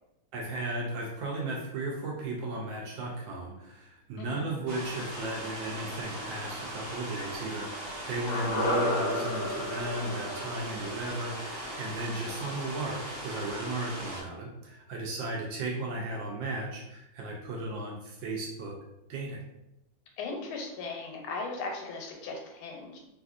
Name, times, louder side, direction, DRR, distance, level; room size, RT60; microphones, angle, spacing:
voice 1, 0.3-18.7 19.1-19.4, right 2 dB, 75° right, -2 dB, 1.2 m, -35 dB
voice 2, 4.2-4.5 10.7-10.9 20.2-23.0, left 3 dB, 90° left, 1 dB, 1.5 m, -38 dB
sound 1, 4.7-14.2, right 1 dB, 50° right, 1.2 m, -39 dB
sound 2, 8.3-12.6 12.8-12.9, left 1 dB, 65° left, 1.2 m, -32 dB
3.3 x 2.5 x 2.4 m, 0.89 s
omnidirectional pair, 2.3 m